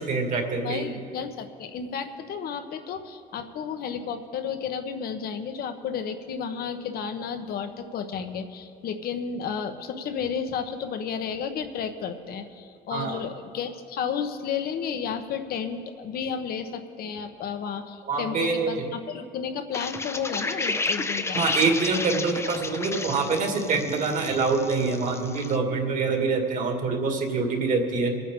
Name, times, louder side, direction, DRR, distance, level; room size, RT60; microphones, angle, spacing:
voice 1, 0.0-0.9 12.9-13.2 18.1-18.8 21.3-28.2, right 4 dB, 50° right, 2 dB, 2.2 m, -25 dB
voice 2, 0.6-21.5, left 7 dB, 65° left, 8 dB, 1.1 m, -32 dB
sound 1, 19.7-25.6, left 3 dB, 15° left, 0.6 m, -32 dB
24.5 x 9.3 x 3.8 m, 2.3 s
cardioid pair, 110°, 17 cm